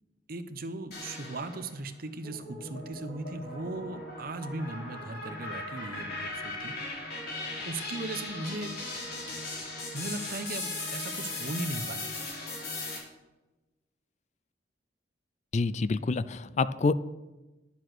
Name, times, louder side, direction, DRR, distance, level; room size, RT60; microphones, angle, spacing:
voice 1, 0.3-7.1 7.4-8.8 9.9-12.3, right 2 dB, 55° right, 9 dB, 0.9 m, -38 dB
sound 1, 0.9-1.8 2.2-13.0, left 2 dB, 65° left, 3.8 m, -38 dB
voice 2, 15.5-16.9, left 3 dB, 40° left, 15 dB, 0.4 m, -27 dB
11.0 x 7.2 x 6.2 m, 1.1 s
head